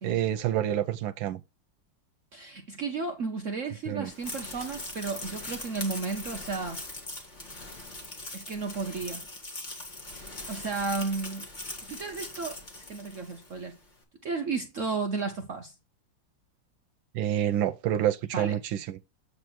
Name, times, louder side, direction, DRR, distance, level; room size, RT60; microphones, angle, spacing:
voice 1, 0.0-1.4 3.9-4.1 17.1-19.0, right 11 dB, 90° right, 1.4 m, -28 dB
voice 2, 2.3-6.8 8.3-9.2 10.5-11.5 11.9-12.6 12.9-13.8 14.2-15.7 18.3-18.5, right 4 dB, 55° right, 0.9 m, -33 dB
sound 1, 4.1-13.6, left 2 dB, 25° left, 1.7 m, -41 dB
8.3 x 3.3 x 6.0 m
omnidirectional pair, 2.1 m